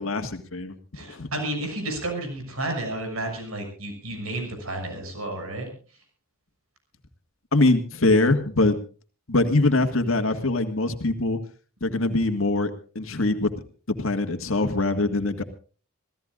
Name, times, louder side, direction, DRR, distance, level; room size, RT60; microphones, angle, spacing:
voice 1, 0.0-0.8 1.1-1.3 7.5-8.8 9.3-11.4 11.8-13.5 13.9-15.4, left 2 dB, 70° left, 6 dB, 1.9 m, -23 dB
voice 2, 0.9-5.7, right 1 dB, 85° right, 4 dB, 6.6 m, -31 dB
27.0 x 16.0 x 2.5 m, 0.39 s
head